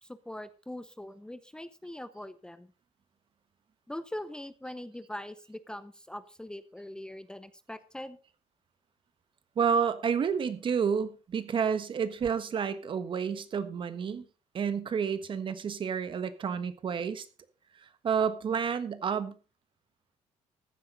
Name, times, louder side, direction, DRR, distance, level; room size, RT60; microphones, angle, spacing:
voice 1, 0.0-2.7 3.9-8.2, left 1 dB, 5° left, 13 dB, 0.7 m, -42 dB
voice 2, 9.5-14.2 14.5-17.3 17.7-19.3, right 6 dB, 45° right, 12 dB, 1.4 m, -30 dB
14.5 x 9.7 x 3.9 m, 0.34 s
cardioid pair, 110°, 12 cm